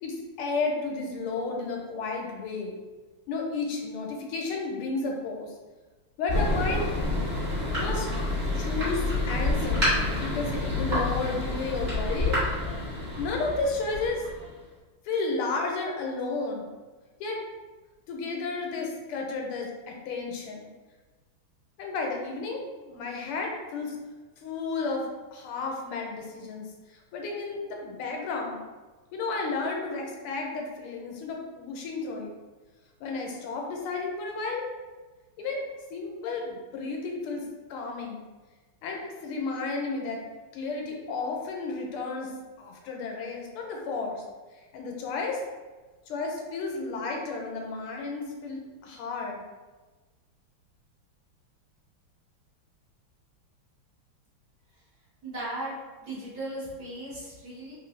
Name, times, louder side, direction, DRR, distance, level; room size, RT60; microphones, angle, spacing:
voice 1, 0.0-2.8 3.3-5.5 6.2-6.9 7.8-8.1 8.5-9.9 10.2-12.9 13.2-14.2 15.0-16.7 17.2-17.4 18.1-20.7 21.8-24.0 24.4-28.6 29.1-32.3 33.0-34.7 35.4-35.6 35.9-38.3 38.8-40.2 40.5-44.2 44.7-45.4 46.1-49.4, left 3 dB, 85° left, 1 dB, 1.6 m, -32 dB
Thunder, 6.3-14.6, left 2 dB, 35° right, 1.4 m, -28 dB
voice 2, 55.2-57.7, right 1 dB, 50° right, -9 dB, 1.6 m, -37 dB
3.9 x 2.6 x 3.1 m, 1.3 s
omnidirectional pair, 2.4 m